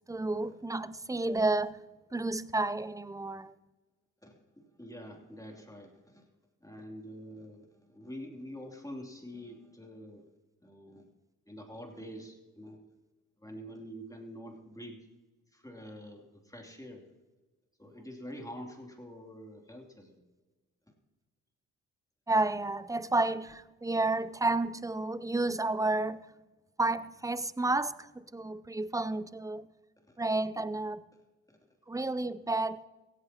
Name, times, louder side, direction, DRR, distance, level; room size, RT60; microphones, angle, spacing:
voice 1, 0.1-1.8 2.1-3.5 22.3-26.2 26.8-29.7 30.2-31.0 31.9-32.8, right 2 dB, 10° right, 18 dB, 0.5 m, -31 dB
voice 2, 4.2-6.3 6.6-10.2 10.6-11.1 11.5-12.8 13.4-15.1 15.5-17.0 17.8-20.2 20.9-21.0 30.1-30.2 31.5-31.6, equal, 10° left, 1 dB, 2.9 m, -46 dB
16.5 x 14.5 x 2.9 m, 1.2 s
hypercardioid pair, 40°, 41 cm